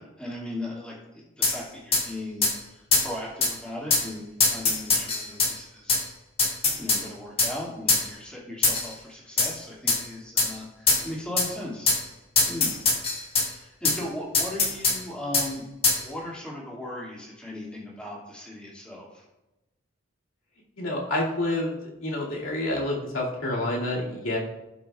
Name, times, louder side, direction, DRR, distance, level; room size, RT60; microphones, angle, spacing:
voice 1, 0.0-2.4 2.7-6.0 6.8-11.9 12.4-12.7 13.5-15.6 16.0-19.2, left 1 dB, 5° left, -5 dB, 2.1 m, -37 dB
sound 1, 1.4-1.6 1.9-2.0 2.4-2.5 2.9-3.1 3.4-3.5 3.9-4.1 4.4-5.5 5.9-6.0 6.4-7.0 7.4-7.5 7.9-8.0 8.6-8.9 9.4-9.5 9.9-10.0 10.4-10.5 10.9-11.0 11.4-11.5 11.9-12.0 12.4-13.5 13.8-14.0 14.3-15.0 15.3-15.5 15.8-16.0, left 3 dB, 25° left, 1.6 m, -22 dB
voice 2, 20.8-24.4, left 1 dB, 85° left, -4 dB, 2.4 m, -28 dB
17.0 x 5.9 x 2.4 m, 1.0 s
head